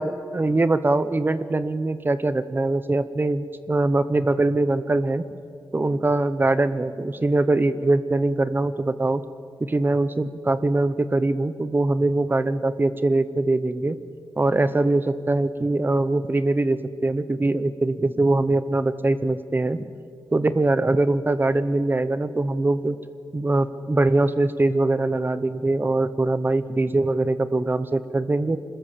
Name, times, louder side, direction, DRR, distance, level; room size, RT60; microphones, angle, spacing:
voice 1, 0.0-5.3 5.7-9.2 9.6-14.0 14.4-19.9 20.3-23.0 23.3-28.6, right 2 dB, 25° right, 13 dB, 0.9 m, -22 dB
26.0 x 20.5 x 7.6 m, 2.3 s
wide cardioid pair, 150°, 8 cm